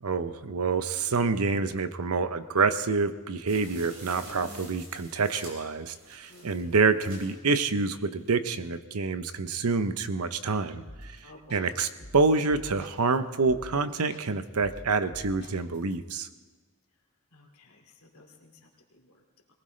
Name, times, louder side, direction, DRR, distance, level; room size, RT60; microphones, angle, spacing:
voice 1, 0.0-11.1 11.5-16.3, right 4 dB, 80° right, 11 dB, 0.8 m, -27 dB
sound 1, 3.5-7.4 7.9-8.0 8.2-8.3, right 2 dB, 65° right, 4.9 m, -47 dB
voice 2, 4.4-4.8 6.3-6.7 11.2-11.8 17.3-18.5 19.0-19.1, left 2 dB, 70° left, 2 dB, 2.4 m, -52 dB
sound 2, 10.9-11.2 11.5-13.2 13.5-13.8 14.1-15.9, equal, 50° left, 3.0 m, -46 dB
21.5 x 19.5 x 3.2 m, 1.3 s
head